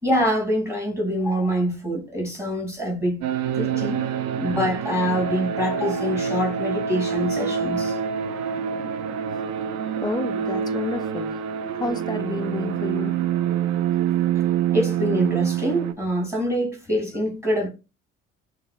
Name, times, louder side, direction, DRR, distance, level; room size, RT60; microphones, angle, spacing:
voice 1, 0.0-3.2 3.5-4.0 4.4-8.0 14.7-17.7, equal, 5° right, 2.6 m, -25 dB
sound 1, 3.2-15.9, right 8 dB, 50° right, 0.6 m, -26 dB
voice 2, 10.0-11.4 11.7-13.2, left 3 dB, 10° left, 0.4 m, -31 dB
6.5 x 2.5 x 2.3 m
figure-of-eight pair, 55°, 37 cm